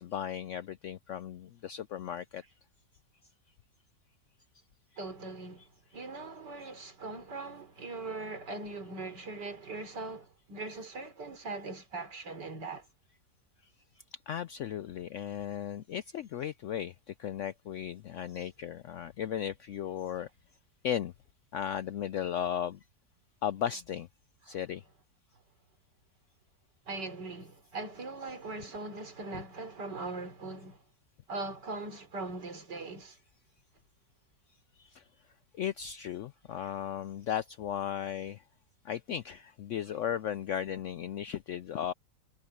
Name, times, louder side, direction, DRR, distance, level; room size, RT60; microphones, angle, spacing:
voice 1, 0.0-2.4 14.3-20.3 20.8-21.1 21.5-22.8 23.4-24.1 24.4-24.8 29.3-29.4 34.8-35.0 35.6-38.4 38.8-41.9, left 10 dB, 80° left, 0.6 m, -36 dB
voice 2, 5.0-12.9 24.5-24.6 26.9-30.8 31.3-33.2 36.5-36.7, right 3 dB, 90° right, 4.1 m, -40 dB
omnidirectional pair, 1.8 m